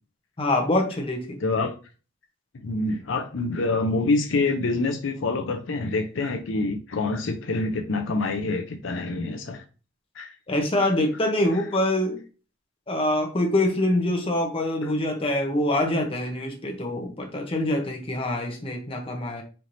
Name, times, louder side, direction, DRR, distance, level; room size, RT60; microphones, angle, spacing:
voice 1, 0.4-1.4 10.5-12.2 12.9-19.4, left 1 dB, 30° left, 0.8 m, -25 dB
voice 2, 1.4-1.7 2.5-9.6 10.2-10.3 11.5-11.6, left 3 dB, 70° left, 0.5 m, -26 dB
4.4 x 3.2 x 2.6 m
head